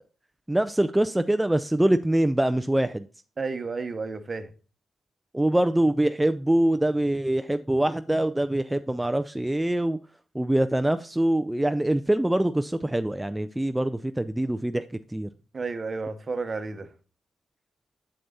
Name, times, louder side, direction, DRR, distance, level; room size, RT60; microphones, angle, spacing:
voice 1, 0.5-3.1 5.3-10.0 10.3-15.3, right 1 dB, 10° right, 0.3 m, -24 dB
voice 2, 3.4-4.5 15.5-16.9, right 4 dB, 45° right, 0.8 m, -32 dB
7.7 x 6.5 x 2.7 m
hypercardioid pair, 45°, 0 cm